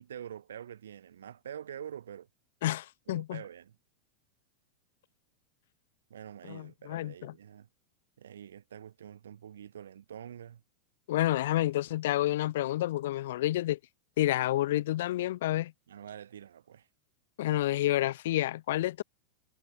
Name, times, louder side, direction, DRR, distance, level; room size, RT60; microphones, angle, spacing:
voice 1, 0.0-2.3 3.1-3.8 6.1-7.7 8.2-10.6 15.9-16.9, right 9 dB, 75° right, 2.5 m, -46 dB
voice 2, 2.6-3.4 6.5-7.3 11.1-13.8 14.2-15.7 17.4-19.0, left 15 dB, 65° left, 0.7 m, -29 dB
hypercardioid pair, 90°, 0 cm